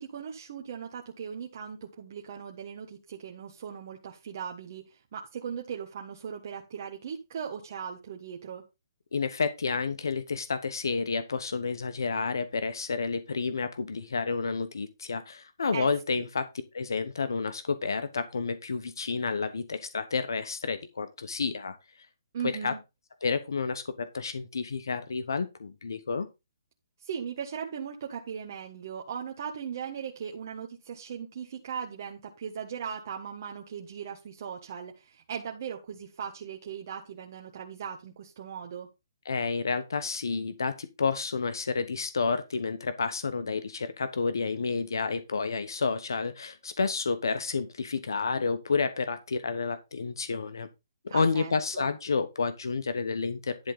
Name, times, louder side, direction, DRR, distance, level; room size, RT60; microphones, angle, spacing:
voice 1, 0.0-8.6 15.7-15.9 16.2-16.3 22.3-22.8 27.0-38.9 51.1-51.9, right 7 dB, 50° right, 1 dB, 1.4 m, -38 dB
voice 2, 9.1-16.5 16.7-21.8 22.4-22.7 23.2-26.3 39.2-50.7 51.0-53.7, left 4 dB, 80° left, 11 dB, 1.1 m, -30 dB
11.0 x 3.7 x 6.9 m, 0.25 s
hypercardioid pair, 155°, 2 cm